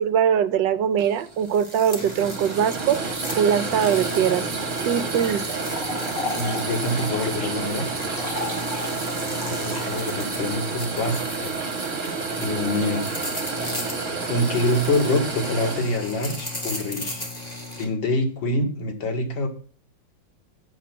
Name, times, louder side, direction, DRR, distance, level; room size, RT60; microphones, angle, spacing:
voice 1, 0.0-3.0 3.4-4.4 4.8-5.6, right 8 dB, 75° right, 14 dB, 1.4 m, -22 dB
sound 1, 1.0-16.5, right 4 dB, 40° right, 1.9 m, -30 dB
sound 2, 1.4-17.8, left 2 dB, 20° left, 2.0 m, -36 dB
sound 3, 5.1-11.4, left 2 dB, 50° left, 5.5 m, -35 dB
voice 2, 6.3-7.8 9.5-11.5 12.4-13.0 14.3-17.2 17.8-19.5, left 1 dB, 85° left, 3 dB, 2.6 m, -25 dB
9.0 x 7.2 x 5.9 m, 0.43 s
omnidirectional pair, 2.0 m